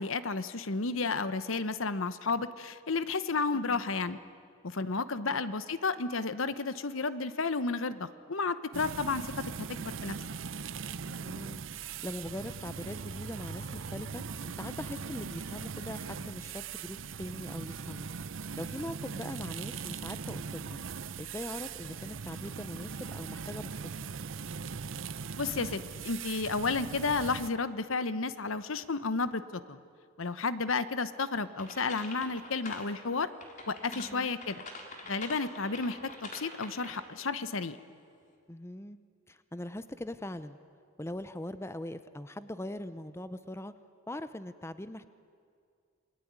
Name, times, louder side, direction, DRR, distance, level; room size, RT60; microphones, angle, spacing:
voice 1, 0.0-4.2 4.6-9.3 9.7-10.2 25.4-29.8 30.2-33.3 33.7-34.6 35.1-37.8, left 4 dB, 70° left, 13 dB, 1.0 m, -32 dB
voice 2, 3.5-3.8 5.2-5.4 11.0-14.2 14.6-18.1 18.6-20.9 21.2-23.7 33.9-34.3 38.5-39.0 39.3-40.6 41.0-43.7 44.1-45.1, left 1 dB, 10° left, 12 dB, 0.7 m, -41 dB
sound 1, 8.7-27.5, right 5 dB, 65° right, 0.7 m, -40 dB
sound 2, 12.6-16.7, equal, 20° right, 2.8 m, -57 dB
sound 3, 31.6-32.9 33.4-37.2, left 2 dB, 35° left, 3.4 m, -45 dB
29.0 x 21.0 x 9.6 m, 2.3 s
head